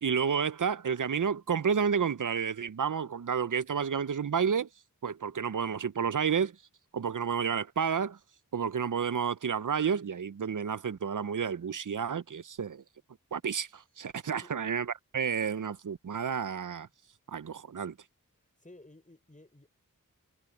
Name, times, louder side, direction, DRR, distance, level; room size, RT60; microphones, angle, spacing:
voice 1, 0.0-4.7 5.0-6.6 6.9-8.2 8.5-12.8 13.3-14.9 15.1-16.9 17.3-17.9, right 7 dB, 65° right, 0.6 m, -30 dB
voice 2, 18.6-19.7, left 2 dB, 20° left, 5.9 m, -54 dB
wide cardioid pair, 40°, 34 cm